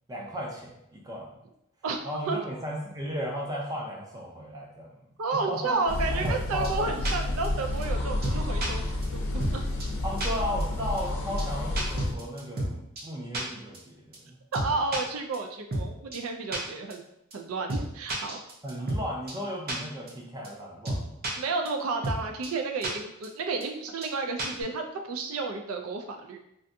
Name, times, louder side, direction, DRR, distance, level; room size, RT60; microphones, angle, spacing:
voice 1, 0.1-1.3 2.0-4.9 5.5-5.8 6.1-6.9 10.0-14.4 18.6-21.1, equal, 20° right, -2 dB, 0.4 m, -35 dB
voice 2, 5.2-9.6 14.5-17.0 17.3-18.4 21.4-26.4, right 3 dB, 85° right, 4 dB, 0.4 m, -31 dB
sound 1, 5.9-12.1, left 1 dB, 65° left, 0.6 m, -30 dB
sound 2, 6.2-6.4 6.6-6.7 7.0-7.1 7.4-7.5 7.8-7.9 8.2-8.7 9.0-9.1 9.4-9.5 9.8-9.9 10.2-10.3 10.6-10.7 11.0-11.1 11.4-11.5 11.8-12.7 13.0-13.1 13.3-13.4 13.7-13.8 14.1-14.2 14.5-15.0 15.3-15.4 15.7-15.8 16.1-16.2 16.5-16.6 16.9-17.0 17.3-17.4 17.7-17.8 18.1-19.0 19.3-19.4 19.7-19.8 20.1-20.2 20.4-20.5 20.8-21.3 21.6-21.7 22.0-22.2 22.4-22.5 22.8-22.9 23.2-23.3 23.6-23.7 24.0-24.1 24.4-24.6, right 1 dB, 50° right, 0.7 m, -30 dB
3.3 x 2.5 x 2.6 m, 0.82 s
head